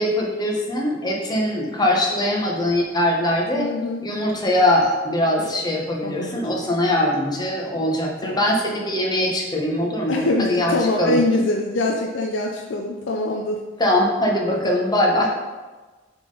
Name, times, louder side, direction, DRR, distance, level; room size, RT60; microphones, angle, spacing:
voice 1, 0.0-3.7 4.0-11.2 13.8-15.5, left 1 dB, 20° left, -1 dB, 1.0 m, -22 dB
voice 2, 3.5-4.0 5.4-5.5 6.0-6.6 8.2-8.4 10.1-13.6 14.5-14.6 15.1-15.2, left 2 dB, 70° left, 0 dB, 0.5 m, -24 dB
6.9 x 3.8 x 3.9 m, 1.3 s
head